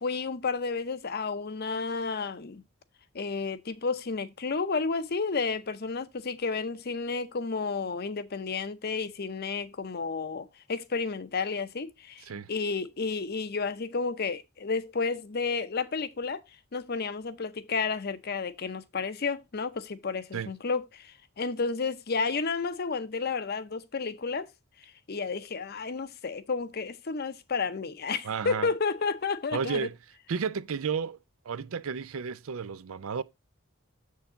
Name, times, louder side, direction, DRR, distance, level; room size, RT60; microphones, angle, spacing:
voice 1, 0.0-2.6 3.1-16.4 16.7-24.5 25.1-29.9, left 4 dB, 50° left, 0.7 m, -31 dB
voice 2, 28.2-28.7 29.5-29.9 30.3-31.2 31.5-33.2, right 6 dB, 90° right, 0.5 m, -32 dB
7.1 x 6.5 x 3.8 m
head